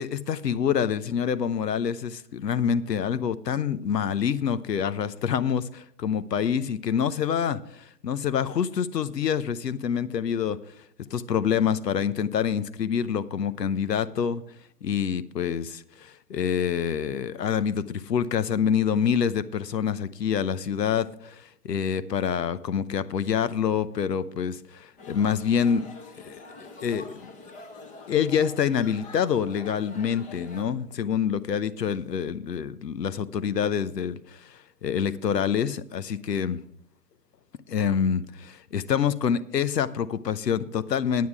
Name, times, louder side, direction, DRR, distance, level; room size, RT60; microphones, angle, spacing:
voice 1, 0.0-10.6 11.1-14.4 14.8-25.9 26.2-26.4 26.8-27.3 28.1-36.6 37.7-41.3, left 7 dB, 80° left, 15 dB, 0.9 m, -26 dB
sound 1, 25.0-30.6, left 3 dB, 15° left, 1.1 m, -45 dB
9.4 x 9.4 x 4.8 m, 0.68 s
figure-of-eight pair, 125°, 48 cm